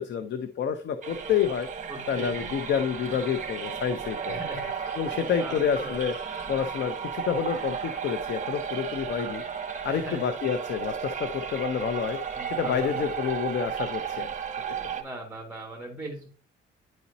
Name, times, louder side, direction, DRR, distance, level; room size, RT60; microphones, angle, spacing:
voice 1, 0.0-1.7 2.1-4.4 5.0-6.1 6.5-9.4 9.8-12.2 12.5-14.3, left 7 dB, 65° left, 8 dB, 0.7 m, -28 dB
sound 1, 1.0-15.0, right 7 dB, 40° right, 1.2 m, -34 dB
voice 2, 1.9-2.5 4.3-4.7 5.4-6.0 9.9-10.3 12.3-13.1 14.7-16.3, right 1 dB, 10° right, -2 dB, 1.7 m, -39 dB
10.5 x 4.1 x 2.7 m, 0.41 s
cardioid pair, 90°, 20 cm